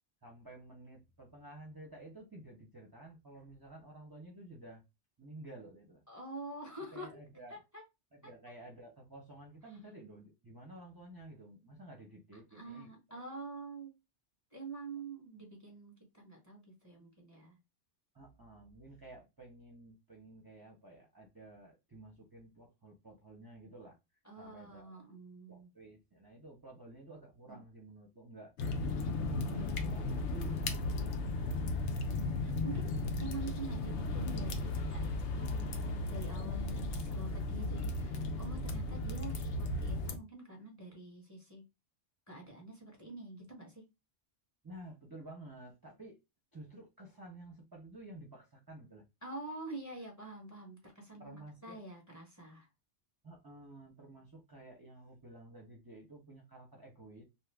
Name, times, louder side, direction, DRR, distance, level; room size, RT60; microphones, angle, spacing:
voice 1, 0.2-4.8 5.2-6.0 6.9-7.6 8.1-13.2 18.1-24.0 24.4-25.0 25.5-28.5 29.3-31.6 44.6-46.2 46.5-49.0 51.2-51.8 53.2-57.2, right 1 dB, 25° right, 0.5 m, -52 dB
voice 2, 6.1-7.1 7.5-7.8 12.5-13.9 14.5-17.6 24.2-25.7 27.5-27.6 32.0-41.6 42.3-43.8 49.2-52.7, right 2 dB, 15° left, 0.9 m, -47 dB
sound 1, 28.6-40.2, left 2 dB, 80° left, 0.9 m, -35 dB
2.7 x 2.4 x 3.3 m
omnidirectional pair, 1.2 m